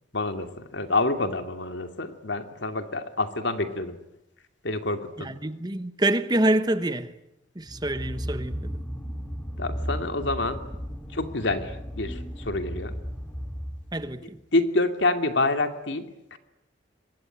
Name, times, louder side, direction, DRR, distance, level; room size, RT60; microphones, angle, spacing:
voice 1, 0.1-4.0 4.6-5.3 9.6-10.6 11.1-12.9 14.5-16.4, left 2 dB, 65° left, 2.6 m, -27 dB
voice 2, 5.2-7.1 7.6-8.8 13.9-14.4, right 1 dB, 20° right, 1.1 m, -26 dB
sound 1, 7.6-14.2, equal, 5° left, 2.9 m, -35 dB
26.5 x 22.5 x 10.0 m
head